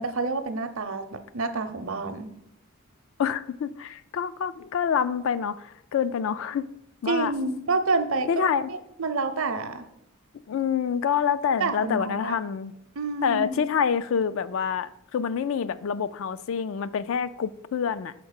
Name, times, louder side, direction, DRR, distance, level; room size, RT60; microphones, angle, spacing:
voice 1, 0.0-2.3 7.1-8.4 8.7-9.8 11.6-12.4 13.0-13.7, right 3 dB, 65° right, 0.6 m, -28 dB
voice 2, 3.2-6.7 7.0-7.3 8.3-8.7 10.5-12.7 13.2-18.1, left 7 dB, 65° left, 0.3 m, -27 dB
5.9 x 4.3 x 6.4 m
head